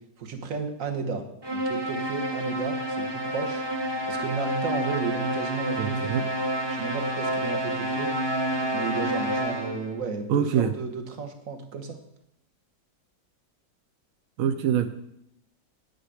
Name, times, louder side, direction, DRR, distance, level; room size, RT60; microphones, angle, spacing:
voice 1, 0.2-1.3 1.5-3.6 4.1-6.3 6.7-8.1 8.7-12.0, right 5 dB, 50° right, 5 dB, 1.4 m, -33 dB
sound 1, 1.4-10.0, right 1 dB, 20° right, 0.7 m, -29 dB
voice 2, 5.8-6.2 10.3-10.7 14.4-14.9, right 9 dB, 70° right, 7 dB, 0.8 m, -24 dB
9.5 x 8.9 x 4.9 m, 0.78 s
omnidirectional pair, 2.0 m